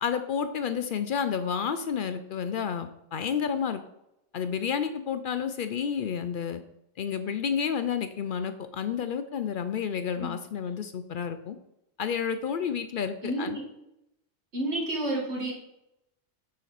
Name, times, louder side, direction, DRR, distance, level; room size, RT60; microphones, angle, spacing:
voice 1, 0.0-3.8 4.3-6.6 7.0-11.6 12.0-13.6, left 7 dB, 60° left, 9 dB, 0.5 m, -30 dB
voice 2, 13.2-13.6 14.5-15.5, right 1 dB, 65° right, -1 dB, 2.1 m, -30 dB
9.2 x 4.2 x 4.0 m, 0.85 s
omnidirectional pair, 1.3 m